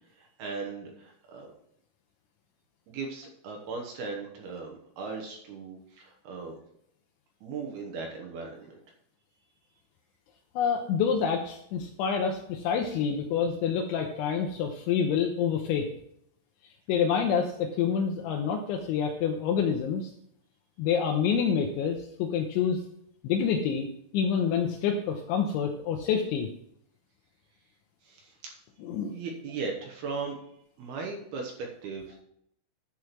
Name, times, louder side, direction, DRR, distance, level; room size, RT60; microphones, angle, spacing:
voice 1, 0.2-1.5 2.9-6.6 7.4-8.8 28.0-28.6 29.1-30.4 30.8-32.2, right 4 dB, 65° right, 1 dB, 2.7 m, -38 dB
voice 2, 10.6-15.9 16.9-20.1 20.8-22.8 23.2-23.9 24.1-26.5 28.8-29.2, left 7 dB, 80° left, 2 dB, 3.0 m, -27 dB
10.5 x 4.9 x 6.0 m, 0.71 s
omnidirectional pair, 5.7 m